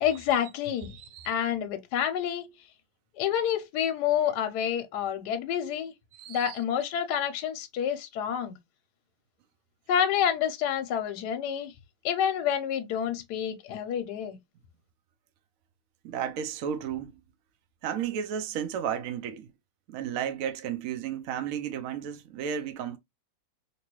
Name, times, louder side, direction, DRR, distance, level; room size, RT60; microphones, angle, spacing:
voice 1, 0.0-0.9 1.2-2.5 3.1-5.9 6.3-8.6 9.9-11.7 12.0-14.4, left 9 dB, 75° left, 1.1 m, -28 dB
voice 2, 0.9-1.3 6.1-6.6 16.0-17.1 17.8-19.5 19.9-23.0, right 8 dB, 70° right, 0.9 m, -33 dB
3.0 x 2.8 x 2.9 m
omnidirectional pair, 1.9 m